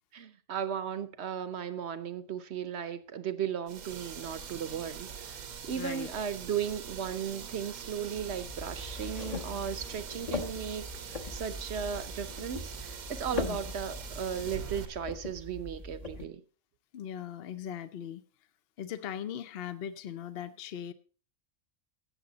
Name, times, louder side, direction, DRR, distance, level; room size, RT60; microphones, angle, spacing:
voice 1, 0.1-16.4, right 8 dB, 55° right, 13 dB, 1.0 m, -36 dB
sound 1, 3.7-14.9, right 7 dB, 85° right, 1.4 m, -43 dB
voice 2, 5.7-6.1 13.3-13.6 16.9-18.2 18.8-20.9, left 9 dB, 60° left, 12 dB, 0.7 m, -39 dB
sound 2, 8.1-16.2, left 3 dB, 30° left, 1.1 m, -41 dB
16.5 x 6.7 x 3.9 m, 0.38 s
omnidirectional pair, 1.5 m